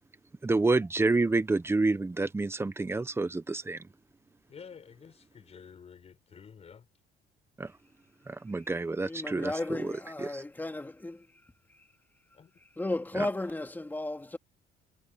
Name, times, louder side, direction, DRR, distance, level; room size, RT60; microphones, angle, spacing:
voice 1, 0.4-3.9 7.6-7.7 8.3-9.9 10.2-10.4 13.2-13.3, right 3 dB, 15° right, 1.3 m, -28 dB
voice 2, 4.5-6.8 12.4-12.5, left 6 dB, 40° left, 5.1 m, -50 dB
voice 3, 9.0-11.3 11.7-11.8 12.6-14.4, left 2 dB, 10° left, 2.6 m, -35 dB
cardioid pair, 110°, 17 cm